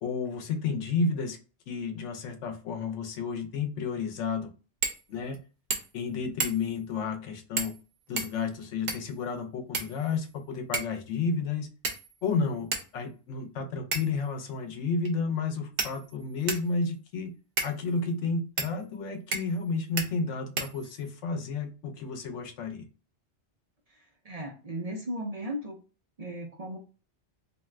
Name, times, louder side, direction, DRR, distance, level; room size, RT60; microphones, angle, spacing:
voice 1, 0.0-1.4 1.7-4.5 5.1-5.4 5.9-7.7 8.1-11.7 12.2-17.3 17.6-22.9, left 4 dB, 90° left, 5 dB, 1.0 m, -31 dB
sound 1, 4.8-5.0 5.3-5.4 5.7-6.0 6.4-6.8 7.6-7.8 8.2-9.2 9.7-10.3 10.7-11.0 11.8-12.3 12.7-12.9 13.9-14.2 15.0-15.1 15.8-16.7 17.6-17.7 18.6-18.7 19.3-19.6 20.0-20.1 20.6-21.1, right 4 dB, 60° right, 0.8 m, -33 dB
voice 2, 23.9-25.8 26.2-26.8, equal, 45° right, 0 dB, 0.5 m, -36 dB
2.6 x 2.3 x 3.2 m, 0.34 s
omnidirectional pair, 1.2 m